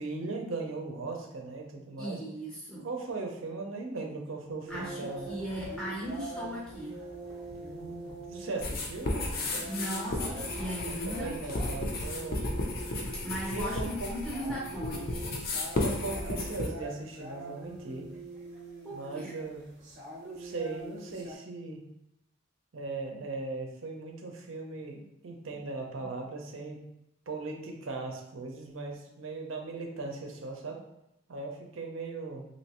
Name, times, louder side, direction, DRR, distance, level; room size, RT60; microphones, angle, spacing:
voice 1, 0.0-2.2 2.8-5.3 7.6-9.7 10.8-12.4 13.5-14.1 15.8-18.1 18.9-19.7 20.2-21.9 22.7-26.8 27.3-30.8 31.3-32.4, right 3 dB, 75° right, 2 dB, 0.6 m, -38 dB
voice 2, 2.0-2.9 4.7-7.0 9.7-11.4 13.2-15.4 18.8-19.3 25.5-25.6 26.0-26.1, equal, 5° left, -6 dB, 0.6 m, -37 dB
sound 1, 4.7-21.3, right 2 dB, 35° right, 0.7 m, -44 dB
sound 2, 8.6-16.7, left 2 dB, 45° left, 0.5 m, -34 dB
3.1 x 2.8 x 2.9 m, 0.86 s
head